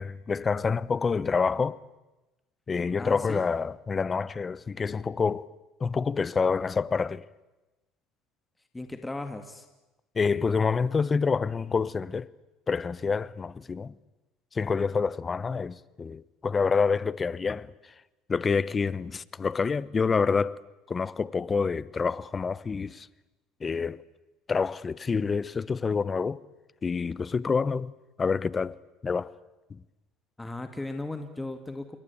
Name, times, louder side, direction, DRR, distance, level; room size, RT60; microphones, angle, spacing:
voice 1, 0.0-1.8 2.7-5.5 5.8-7.2 10.1-12.3 12.7-14.0 14.5-17.9 18.3-20.6 20.9-23.1 23.6-24.0 24.5-26.4 26.8-27.9 28.2-28.8 29.0-29.3 29.7-29.8, left 5 dB, 30° left, 1.0 m, -27 dB
voice 2, 3.0-3.4 8.7-9.7 30.4-32.0, left 2 dB, 10° left, 2.4 m, -36 dB
28.0 x 22.5 x 8.7 m
supercardioid pair, 90°, 0 cm